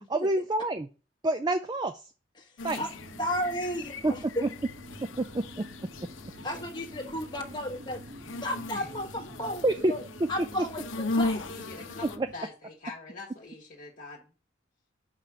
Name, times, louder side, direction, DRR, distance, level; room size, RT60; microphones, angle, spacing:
voice 1, 0.1-0.9 1.2-2.0 2.6-2.8 4.0-4.5 5.2-5.6 9.6-9.9 12.2-12.3, right 2 dB, 20° right, 9 dB, 0.4 m, -27 dB
voice 2, 2.4-2.9 3.2-4.4 6.4-8.0 8.4-10.0 10.3-11.5, equal, 25° left, 1 dB, 1.1 m, -34 dB
sound 1, 2.6-12.2, left 2 dB, 80° left, 0.7 m, -38 dB
sound 2, 2.9-12.4, right 1 dB, 40° right, 1.4 m, -47 dB
voice 3, 11.5-14.3, left 3 dB, 40° left, -4 dB, 1.2 m, -44 dB
5.7 x 5.0 x 6.0 m, 0.35 s
head